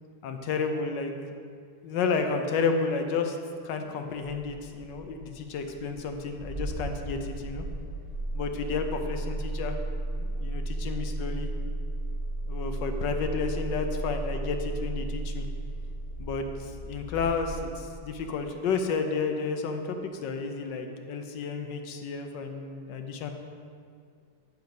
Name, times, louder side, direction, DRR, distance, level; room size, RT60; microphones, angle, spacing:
voice 1, 0.2-1.1 1.8-3.4 3.6-7.6 8.3-9.8 10.3-11.5 12.5-15.5 16.2-23.3, left 4 dB, 70° left, 5 dB, 1.3 m, -31 dB
Engine starting, 4.1-18.3, right 2 dB, 20° left, 2.0 m, -34 dB
9.0 x 5.6 x 5.1 m, 2.3 s
omnidirectional pair, 2.2 m